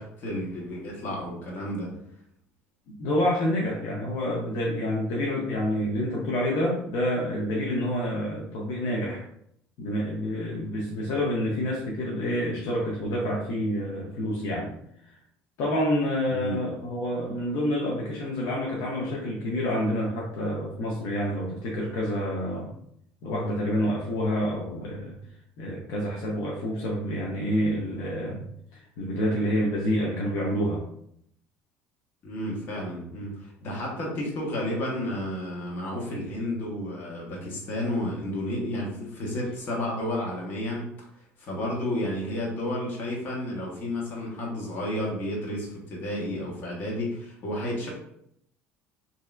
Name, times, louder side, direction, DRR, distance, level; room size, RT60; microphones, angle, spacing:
voice 1, 0.0-1.9 16.3-16.6 32.2-40.9 41.4-47.9, left 1 dB, 45° left, -3 dB, 1.1 m, -31 dB
voice 2, 2.9-9.2 9.8-14.7 15.0-15.1 15.6-22.7 23.2-25.2 25.6-28.4 28.7-30.8, equal, 70° left, -3 dB, 0.7 m, -28 dB
3.1 x 2.7 x 2.4 m, 0.71 s
cardioid pair, 120°, 5 cm